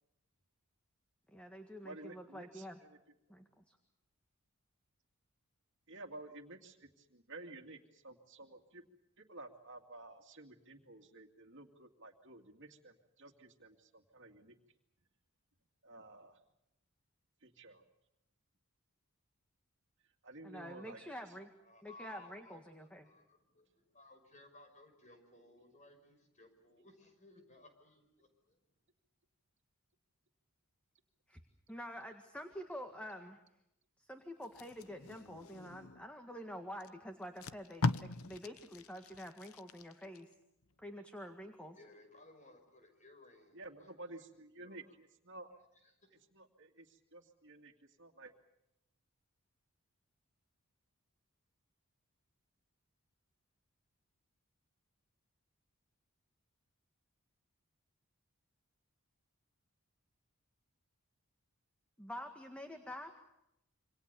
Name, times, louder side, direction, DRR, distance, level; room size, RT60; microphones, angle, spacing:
voice 1, 1.3-2.8 3.3-3.8 20.4-21.5 21.8-23.1 31.3-31.4 31.7-33.4 34.0-40.3 40.8-41.8 62.0-63.1, equal, 5° left, 5 dB, 1.8 m, -47 dB
voice 2, 1.8-3.0 5.9-8.8 9.2-14.6 15.8-16.4 17.4-17.8 20.2-21.0 43.5-45.5 46.3-47.7 48.0-48.3, right 2 dB, 55° right, 4 dB, 2.4 m, -53 dB
voice 3, 21.6-28.6 41.7-43.9 44.6-45.0 45.8-46.2, left 2 dB, 35° left, 6 dB, 5.7 m, -60 dB
Packing tape duct tape, 34.4-36.1 36.8-36.9 37.2-40.2 40.6-40.8, left 3 dB, 70° left, 0.9 m, -40 dB
27.5 x 25.5 x 6.9 m, 0.83 s
head